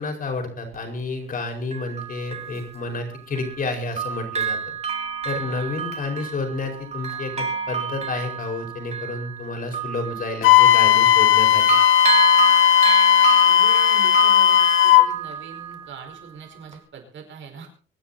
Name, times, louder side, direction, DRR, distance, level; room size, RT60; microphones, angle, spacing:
voice 1, 0.0-4.7 5.2-11.8, left 3 dB, 45° left, 4 dB, 5.0 m, -30 dB
Bell, 0.7-0.8 1.7-3.7 4.0-11.4 11.7-16.3 16.7-16.8, right 6 dB, 30° right, 2.5 m, -29 dB
voice 2, 5.4-5.7 13.4-17.7, right 6 dB, 70° right, 3 dB, 5.1 m, -42 dB
Wind instrument woodwind instrument, 10.4-15.1, left 11 dB, 85° left, 1.2 m, -15 dB
24.0 x 9.9 x 4.2 m, 0.42 s
cardioid pair, 145°, 20 cm